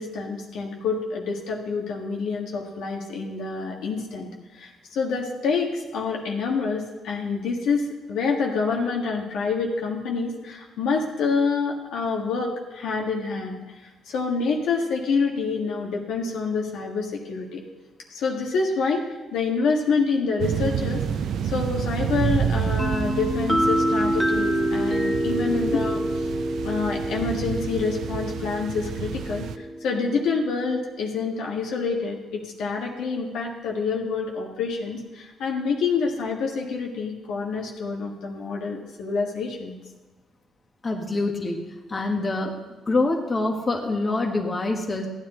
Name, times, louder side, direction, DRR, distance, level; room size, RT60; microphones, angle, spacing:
voice 1, 0.0-4.3 4.5-13.6 14.1-17.6 18.1-19.0 19.3-21.0 21.4-26.3 26.6-39.8, left 4 dB, 80° left, -1 dB, 1.7 m, -27 dB
sound 1, 20.4-29.6, right 8 dB, 70° right, 0.5 m, -29 dB
sound 2, 22.8-30.4, right 1 dB, 5° right, 1.6 m, -27 dB
voice 2, 40.8-41.6 41.9-42.5 42.9-45.1, left 2 dB, 30° left, 2 dB, 1.4 m, -25 dB
14.5 x 9.7 x 3.9 m, 1.2 s
cardioid pair, 90°, 0 cm